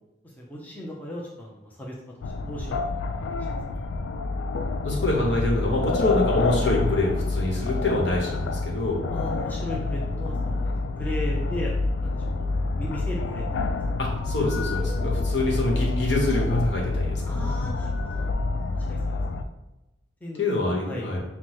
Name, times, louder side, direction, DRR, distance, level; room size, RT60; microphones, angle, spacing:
voice 1, 0.2-2.8 3.3-3.6 9.1-10.7 11.0-11.7 12.0-12.5 12.8-13.5 17.3-18.3 18.7-19.2 20.2-20.4 20.9-21.1, equal, 10° left, -4 dB, 0.5 m, -36 dB
sound 1, 2.2-19.4, left 3 dB, 90° left, 0.3 m, -27 dB
voice 2, 4.8-9.0 14.0-17.4 18.5-18.6 20.4-21.2, left 2 dB, 70° left, -2 dB, 1.0 m, -26 dB
5.7 x 2.1 x 3.0 m, 0.96 s
head